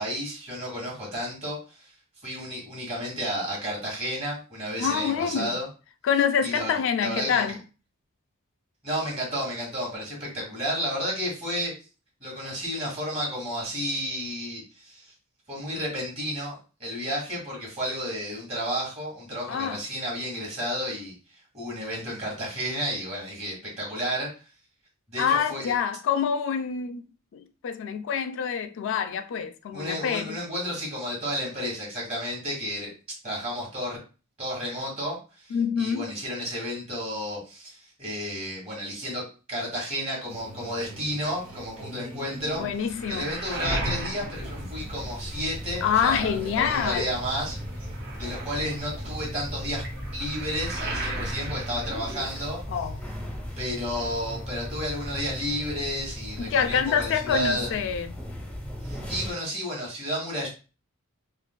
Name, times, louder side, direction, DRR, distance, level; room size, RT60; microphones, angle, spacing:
voice 1, 0.0-1.9 2.2-5.7 6.4-7.4 8.8-11.7 12.2-15.0 15.5-21.1 21.5-24.3 25.1-25.7 29.7-32.9 33.2-34.0 34.4-42.6 43.1-47.6 48.2-49.8 50.1-52.6 53.6-57.7 58.8-60.5, equal, 30° right, 1.8 m, -32 dB
voice 2, 4.8-5.5 6.0-7.6 19.5-19.8 25.2-27.0 27.3-30.4 35.5-36.1 42.6-43.3 45.8-47.2 52.7-53.0 56.4-58.1, left 7 dB, 65° left, 0.3 m, -26 dB
sound 1, 40.3-50.9, right 1 dB, 75° right, 1.4 m, -45 dB
Waves surf, 42.3-45.6 45.9-52.8 53.1-54.0, right 1 dB, 55° right, 1.1 m, -36 dB
sound 2, 44.3-59.3, equal, 5° left, 0.6 m, -37 dB
4.9 x 2.4 x 2.2 m
head